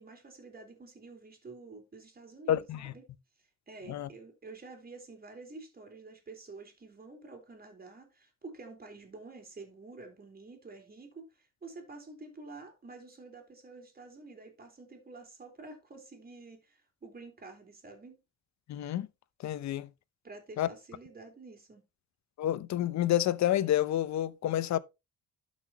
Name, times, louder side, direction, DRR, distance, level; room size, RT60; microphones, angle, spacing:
voice 1, 0.0-3.0 3.7-18.2 20.2-21.8, right 3 dB, 30° right, 3.9 m, -49 dB
voice 2, 2.5-2.9 3.9-4.1 18.7-19.1 19.4-19.9 20.6-20.7 22.4-24.8, left 12 dB, 65° left, 0.8 m, -29 dB
12.0 x 6.2 x 3.0 m
cardioid pair, 90°, 30 cm